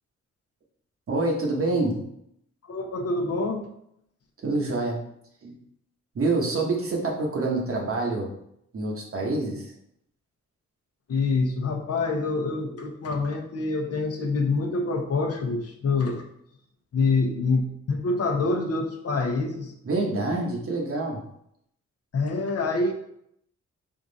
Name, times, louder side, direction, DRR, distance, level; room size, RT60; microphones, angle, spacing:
voice 1, 1.1-2.1 4.4-5.0 5.4-5.6 6.1-8.3 8.7-9.7 19.8-21.2, right 2 dB, 50° right, -1 dB, 1.1 m, -26 dB
voice 2, 2.6-3.7 11.1-16.2 16.9-19.7 22.1-22.9, left 3 dB, 55° left, 3 dB, 0.7 m, -26 dB
3.7 x 2.5 x 3.9 m, 0.74 s
cardioid pair, 75°, 30 cm